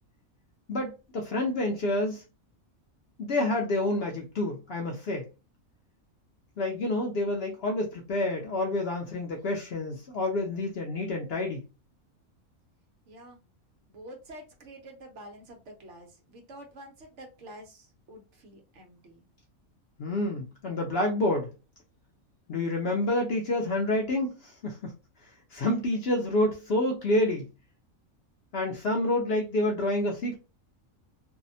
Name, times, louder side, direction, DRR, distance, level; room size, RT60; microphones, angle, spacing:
voice 1, 0.7-2.2 3.2-5.2 6.6-11.6 20.0-21.5 22.5-24.9 25.5-27.5 28.5-30.4, left 1 dB, 65° left, 0.6 m, -28 dB
voice 2, 13.1-13.4 13.9-19.3, right 1 dB, 60° right, 1.0 m, -48 dB
2.7 x 2.1 x 2.6 m
omnidirectional pair, 1.4 m